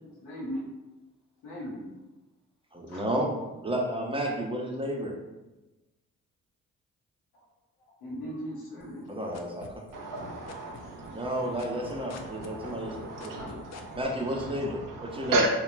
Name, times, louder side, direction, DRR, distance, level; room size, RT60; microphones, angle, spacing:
voice 1, 0.0-0.6 1.4-1.9 2.9-3.0 7.9-9.1 13.3-13.6, equal, 80° left, -3 dB, 0.8 m, -38 dB
voice 2, 2.7-3.3 3.6-5.2 9.1-9.7 11.1-13.6 14.0-15.4, right 1 dB, 15° right, -1 dB, 0.7 m, -32 dB
sound 1, 8.8-10.2 10.5-14.0, left 7 dB, 45° left, 0.4 m, -47 dB
voice 3, 9.9-15.5, right 2 dB, 60° right, 1 dB, 0.7 m, -34 dB
2.9 x 2.2 x 2.5 m, 1.0 s
hypercardioid pair, 40°, 37 cm